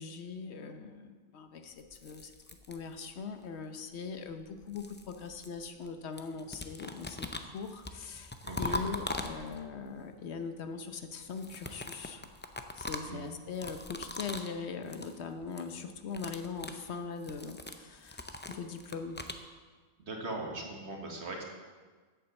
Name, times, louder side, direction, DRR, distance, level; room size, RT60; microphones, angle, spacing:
voice 1, 0.0-2.3 2.7-12.2 12.8-19.2, left 5 dB, 75° left, 7 dB, 1.1 m, -41 dB
sound 1, 1.8-3.4 4.3-5.9 6.2-9.8 11.2-14.6 14.8-15.2 15.4-15.7 16.0-19.4, left 2 dB, 15° left, 0.4 m, -41 dB
voice 2, 8.4-8.9 13.0-13.3 20.0-21.4, right 2 dB, 80° right, 1 dB, 1.8 m, -40 dB
8.5 x 7.4 x 7.0 m, 1.5 s
omnidirectional pair, 1.1 m